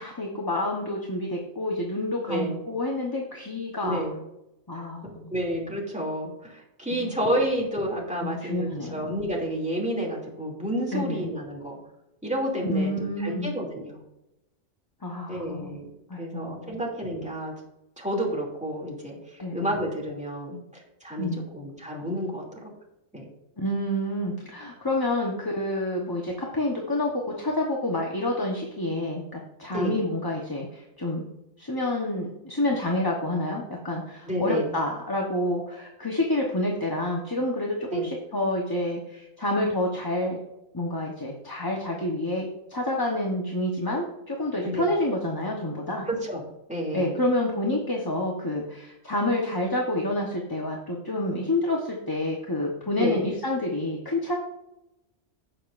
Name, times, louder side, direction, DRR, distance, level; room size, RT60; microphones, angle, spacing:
voice 1, 0.0-4.0 4.7-5.3 6.9-7.1 8.2-9.0 10.9-11.3 12.7-13.6 15.0-15.8 16.1-16.8 19.4-19.8 21.2-21.5 23.6-31.3 31.6-40.4 40.7-46.1 46.9-54.3, left 1 dB, 20° left, -1 dB, 1.0 m, -28 dB
voice 2, 2.3-2.6 3.8-4.2 4.7-11.8 12.2-14.0 15.3-15.9 16.2-17.5 18.0-21.3 21.5-22.6 23.1-23.3 29.7-29.9 34.3-34.7 37.9-38.1 44.6-44.9 46.1-46.4 46.7-47.2 53.0-53.3, equal, 5° right, -3 dB, 2.6 m, -30 dB
17.0 x 6.7 x 2.6 m, 0.90 s
omnidirectional pair, 1.2 m